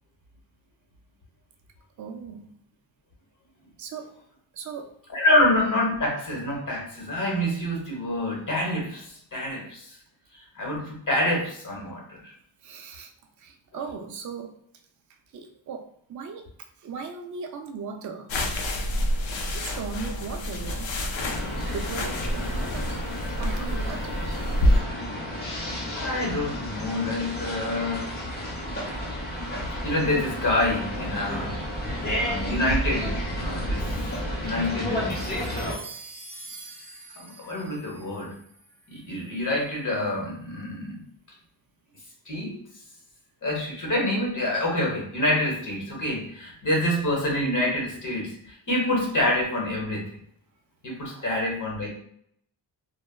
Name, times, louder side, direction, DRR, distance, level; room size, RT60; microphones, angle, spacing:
voice 1, 2.0-2.5 3.8-4.1 4.5-4.9 5.4-5.5 12.6-13.1 13.4-14.5 15.3-16.5 16.8-18.3 19.5-21.0 21.4-23.0 23.4-24.3 51.0-51.4, right 5 dB, 40° right, 3 dB, 0.4 m, -38 dB
voice 2, 5.1-9.9 10.6-12.3 13.7-13.8 26.0-28.1 29.8-31.6 32.1-33.9 34.4-35.2 37.2-38.3 38.9-41.0 42.3-42.6 43.4-50.1 50.8-51.9, left 1 dB, 40° left, -1 dB, 0.9 m, -27 dB
sound 1, 18.3-24.8, left 1 dB, 75° left, 0.6 m, -27 dB
sound 2, 21.1-35.8, equal, 20° left, 0.7 m, -31 dB
sound 3, 35.1-39.6, right 3 dB, 60° right, 1.1 m, -45 dB
3.2 x 2.2 x 2.2 m, 0.67 s
wide cardioid pair, 120°, 46 cm